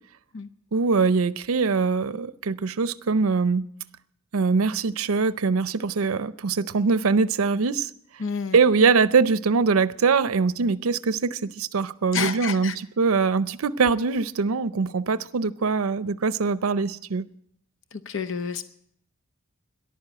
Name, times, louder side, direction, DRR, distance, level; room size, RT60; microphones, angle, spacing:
voice 1, 0.7-3.6 4.3-7.9 8.5-17.3, right 4 dB, 85° right, 14 dB, 0.6 m, -23 dB
voice 2, 8.2-8.6 12.1-12.8 17.9-18.6, left 6 dB, 65° left, 11 dB, 0.8 m, -29 dB
14.0 x 11.0 x 8.5 m, 0.70 s
head